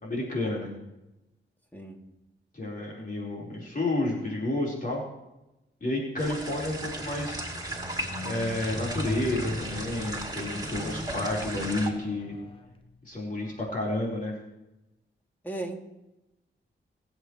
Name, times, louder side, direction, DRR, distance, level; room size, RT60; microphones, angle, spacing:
voice 1, 0.0-0.7 2.5-5.0 5.8-7.5 8.2-12.3 13.0-14.3, left 2 dB, 45° left, -4 dB, 4.6 m, -30 dB
sound 1, 6.2-11.9, right 1 dB, 20° right, 3.0 m, -36 dB
Squeak, 6.6-12.9 13.7-13.8, left 2 dB, 25° left, 1.2 m, -39 dB
voice 2, 15.4-15.9, right 2 dB, 10° left, 0 dB, 2.9 m, -36 dB
23.0 x 8.4 x 3.3 m, 0.95 s
cardioid pair, 55°, 21 cm